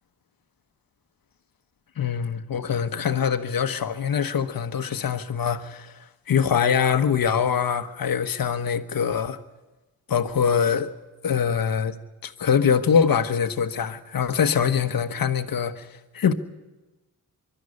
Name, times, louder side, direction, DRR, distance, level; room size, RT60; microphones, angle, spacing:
voice 1, 2.0-6.0 6.3-9.4 10.1-10.9 11.2-11.9 12.2-16.3, left 7 dB, 65° left, 1.3 m, -23 dB
24.0 x 12.5 x 9.8 m
cardioid pair, 75°, 37 cm